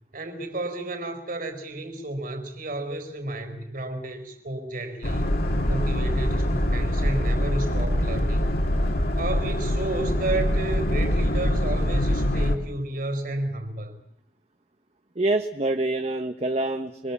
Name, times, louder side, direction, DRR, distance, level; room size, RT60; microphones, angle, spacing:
voice 1, 0.1-5.4 5.7-8.5 9.2-14.0, right 2 dB, 50° right, 7 dB, 4.7 m, -32 dB
Boat Water vehicle, 5.0-12.6, left 1 dB, 55° left, 2.6 m, -24 dB
voice 2, 15.2-17.1, right 2 dB, 35° right, 6 dB, 1.2 m, -26 dB
27.5 x 22.5 x 7.4 m, 0.78 s
head